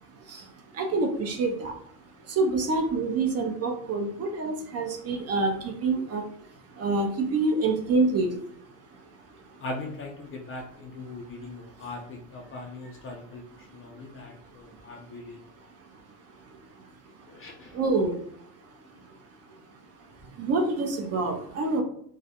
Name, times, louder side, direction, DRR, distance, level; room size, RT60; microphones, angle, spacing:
voice 1, 0.8-1.7 2.4-6.2 6.8-8.3 17.7-18.1 20.4-21.8, right 3 dB, 35° right, 3 dB, 0.5 m, -26 dB
voice 2, 9.6-15.4 17.3-17.8, left 2 dB, 30° left, 0 dB, 0.4 m, -40 dB
2.3 x 2.0 x 2.7 m, 0.67 s
supercardioid pair, 100°, 44 cm